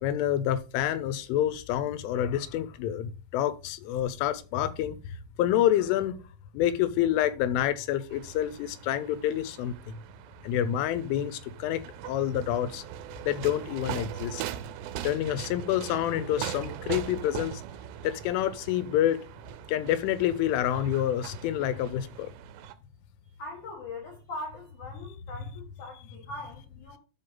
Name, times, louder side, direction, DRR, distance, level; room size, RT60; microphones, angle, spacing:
voice 1, 0.0-6.2 6.5-10.0 10.4-12.8 13.3-14.4 15.0-17.6 18.0-19.3 19.7-22.3, left 11 dB, 90° left, 3.2 m, -28 dB
sound 1, 8.1-22.8, right 11 dB, 85° right, 2.5 m, -41 dB
voice 2, 23.4-27.0, left 2 dB, 70° left, 1.9 m, -41 dB
12.0 x 4.5 x 3.9 m
omnidirectional pair, 5.5 m